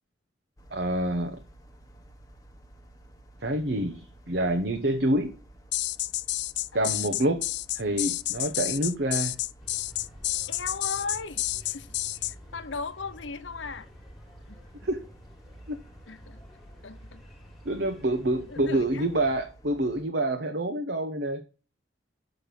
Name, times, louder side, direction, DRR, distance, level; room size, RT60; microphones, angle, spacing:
sound 1, 0.6-20.0, right 1 dB, 20° left, 1.0 m, -53 dB
voice 1, 0.7-1.4 3.4-5.3 6.7-7.4 7.7-9.3 14.8-15.0 15.7-15.8 17.6-21.4, right 1 dB, 60° right, 1.0 m, -27 dB
sound 2, 5.7-12.3, left 16 dB, 65° left, 0.4 m, -30 dB
sound 3, 9.6-19.4, equal, ahead, 1.8 m, -50 dB
voice 2, 10.5-13.9 14.5-14.6 16.1-16.4 16.8-17.3 18.5-19.1, left 4 dB, 80° left, 0.9 m, -37 dB
6.6 x 6.0 x 6.9 m
head